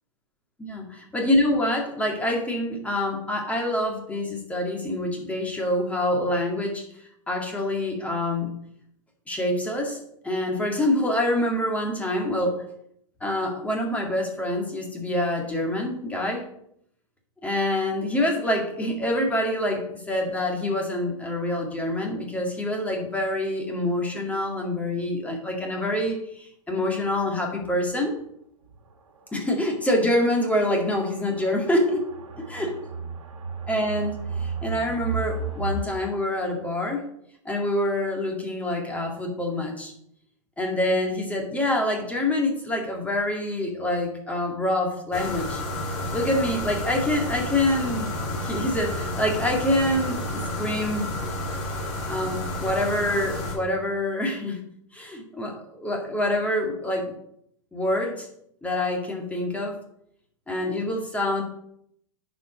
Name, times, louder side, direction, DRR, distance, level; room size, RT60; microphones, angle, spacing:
voice 1, 0.6-6.8 7.3-8.5 9.3-12.6 13.2-16.5 17.4-28.1 29.3-32.0 32.5-32.8 33.7-37.0 37.5-39.9 40.6-45.6 46.1-48.1 48.4-51.1 51.5-51.6 52.1-54.6 54.9-57.1 57.7-58.3 58.6-59.8 60.5-61.4, left 1 dB, 10° left, 1 dB, 2.0 m, -26 dB
sound 1, 27.6-27.7 28.1-28.2 28.7-28.8 29.7-35.8, right 4 dB, 90° right, 2.0 m, -34 dB
sound 2, 45.1-53.5, left 1 dB, 35° left, 3.1 m, -31 dB
10.0 x 5.2 x 5.1 m, 0.72 s
hypercardioid pair, 125°, 17 cm